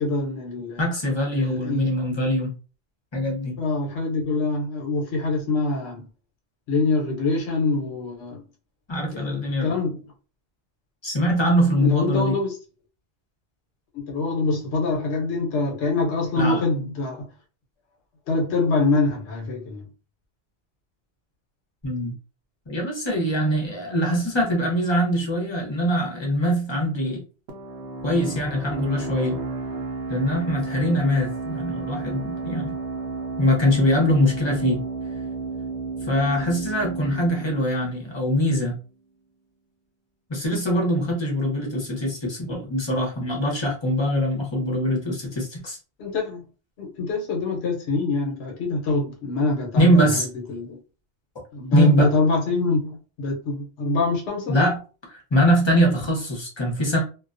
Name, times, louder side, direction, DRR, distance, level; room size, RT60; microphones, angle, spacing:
voice 1, 0.0-0.8 1.4-1.9 3.6-6.0 6.7-8.4 9.1-10.0 11.8-12.5 13.9-17.3 18.3-19.8 46.0-46.4 46.8-50.1 50.5-50.8 51.5-54.6, left 3 dB, 75° left, 1.0 m, -25 dB
voice 2, 0.8-2.5 3.1-3.5 8.9-9.7 11.0-12.3 16.3-16.6 21.8-22.1 22.7-27.2 28.0-29.4 30.1-32.8 33.4-34.8 36.0-38.8 40.3-45.8 49.8-50.3 51.7-52.1 54.5-54.8 55.1-57.0, equal, 30° left, 0.8 m, -22 dB
sound 1, 27.5-38.9, right 4 dB, 75° right, 0.9 m, -32 dB
2.3 x 2.1 x 2.5 m
omnidirectional pair, 1.1 m